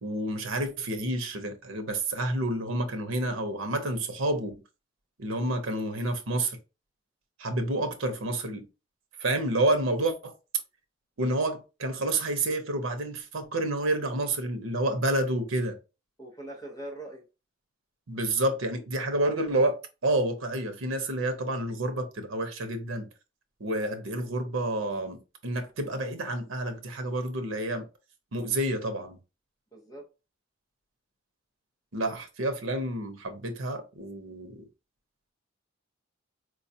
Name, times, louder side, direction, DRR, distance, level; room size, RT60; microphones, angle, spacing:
voice 1, 0.0-4.5 5.2-6.6 7.4-8.6 9.2-10.3 11.2-15.8 18.1-23.1 23.6-27.9 28.3-29.2 31.9-34.6, right 1 dB, 90° right, 0.8 m, -29 dB
voice 2, 16.2-17.3 29.7-30.1, right 1 dB, 20° left, 0.9 m, -41 dB
4.5 x 2.3 x 2.7 m
head